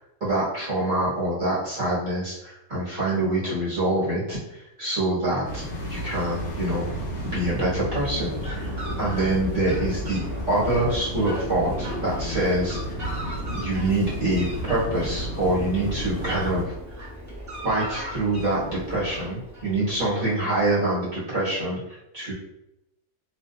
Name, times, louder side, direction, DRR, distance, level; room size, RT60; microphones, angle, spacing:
voice 1, 0.2-6.8 7.2-10.2 10.5-12.8 13.5-16.7 17.6-22.3, right 1 dB, 35° right, -9 dB, 1.4 m, -25 dB
sound 1, 5.4-16.6, equal, 55° left, 0.7 m, -32 dB
Fowl, 7.8-20.7, equal, 15° right, 0.6 m, -38 dB
3.0 x 2.6 x 2.3 m, 0.87 s
omnidirectional pair, 1.5 m